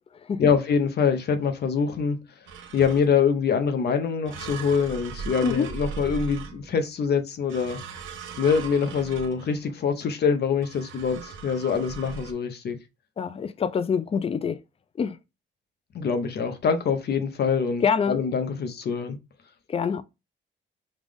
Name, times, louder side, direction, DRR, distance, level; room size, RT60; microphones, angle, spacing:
voice 1, 0.4-2.2 2.7-7.8 8.4-12.8 15.9-19.2, left 6 dB, 55° left, 0.8 m, -24 dB
sound 1, 2.5-3.3 4.3-6.9 7.5-9.7 10.6-12.3, right 6 dB, 80° right, 1.0 m, -39 dB
voice 2, 13.2-14.6 15.0-15.2 17.8-18.2 19.7-20.0, left 6 dB, 30° left, 0.5 m, -25 dB
5.4 x 2.4 x 3.5 m
cardioid pair, 90°, 20 cm